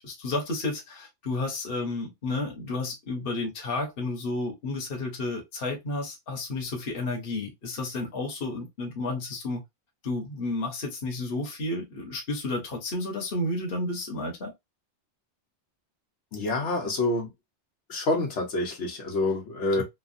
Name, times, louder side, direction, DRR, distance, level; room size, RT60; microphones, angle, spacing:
voice 1, 0.0-9.6 10.0-14.5 19.8-19.9, left 2 dB, 55° left, 1.1 m, -31 dB
voice 2, 16.3-17.3 17.9-19.8, left 2 dB, 80° left, 1.3 m, -27 dB
3.2 x 2.2 x 2.5 m
omnidirectional pair, 1.2 m